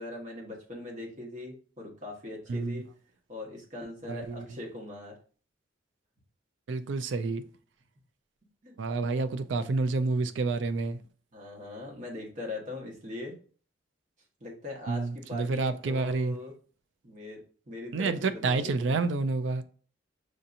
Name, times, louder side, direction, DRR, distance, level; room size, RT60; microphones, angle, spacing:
voice 1, 0.0-2.9 3.3-5.2 8.6-8.8 11.3-13.4 14.4-16.5 17.0-19.0, left 2 dB, 45° right, 1.3 m, -41 dB
voice 2, 2.5-2.8 4.1-4.5 6.7-7.4 8.8-11.0 14.9-16.4 17.9-19.6, right 3 dB, 75° right, 0.4 m, -29 dB
6.3 x 2.8 x 2.5 m
head